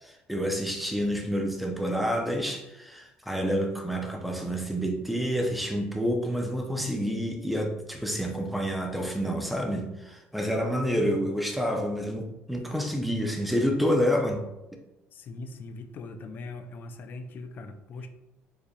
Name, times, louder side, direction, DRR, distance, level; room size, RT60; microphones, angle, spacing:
voice 1, 0.0-14.4, equal, ahead, 2 dB, 0.5 m, -28 dB
voice 2, 15.1-18.1, left 3 dB, 45° left, 8 dB, 0.4 m, -41 dB
4.6 x 3.3 x 2.3 m, 0.96 s
cardioid pair, 120°, 5 cm